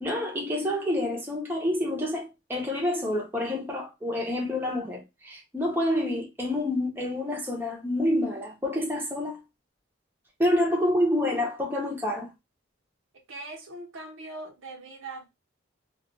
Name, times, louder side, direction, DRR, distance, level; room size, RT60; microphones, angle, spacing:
voice 1, 0.0-9.4 10.4-12.3, left 1 dB, 10° right, 0.6 m, -28 dB
voice 2, 13.3-15.3, right 2 dB, 80° right, 0.8 m, -41 dB
2.3 x 2.2 x 3.9 m
head